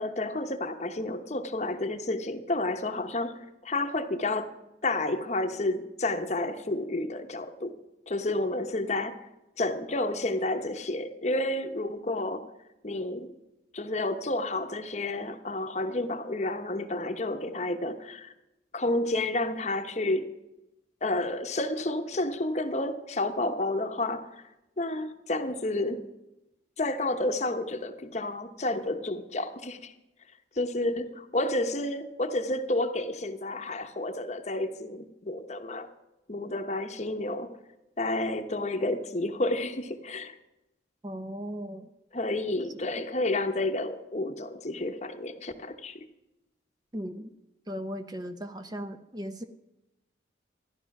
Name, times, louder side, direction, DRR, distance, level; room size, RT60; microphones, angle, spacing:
voice 1, 0.0-4.5 4.8-7.7 8.1-9.2 9.6-12.5 12.8-13.3 13.7-18.3 18.7-20.3 21.0-24.4 24.8-26.0 26.8-29.9 30.6-35.9 36.3-37.6 38.0-40.4 42.1-46.0, left 2 dB, 35° left, 8 dB, 0.9 m, -30 dB
voice 2, 41.0-41.9 43.0-43.1 46.9-47.3 47.7-49.4, equal, 20° right, 8 dB, 0.6 m, -37 dB
13.5 x 10.5 x 6.0 m, 0.94 s
head